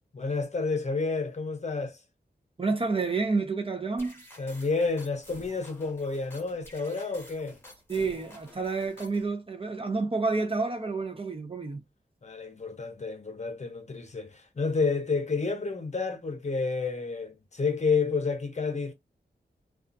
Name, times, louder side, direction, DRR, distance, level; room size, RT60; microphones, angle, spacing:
voice 1, 0.1-2.0 4.4-7.6 12.2-18.9, left 4 dB, 40° left, 0.7 m, -30 dB
voice 2, 2.6-4.2 7.9-11.8, right 4 dB, 30° right, 0.5 m, -29 dB
sound 1, 4.0-9.3, left 1 dB, 15° left, 1.0 m, -51 dB
2.4 x 2.3 x 2.5 m
wide cardioid pair, 100°, 18 cm